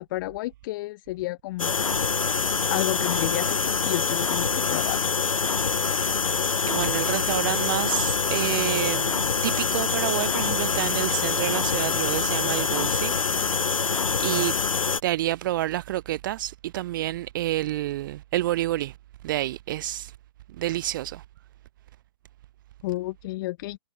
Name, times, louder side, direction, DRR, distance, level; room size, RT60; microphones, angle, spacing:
voice 1, 0.0-1.8 2.7-5.1 22.8-23.8, left 18 dB, 40° left, 3.7 m, -31 dB
sound 1, 1.6-15.0, left 5 dB, 75° left, 3.3 m, -25 dB
voice 2, 6.2-13.1 14.2-14.5 15.0-18.9 19.2-20.1 20.6-21.2, right 14 dB, 40° right, 0.6 m, -28 dB
figure-of-eight pair, 125°, 17 cm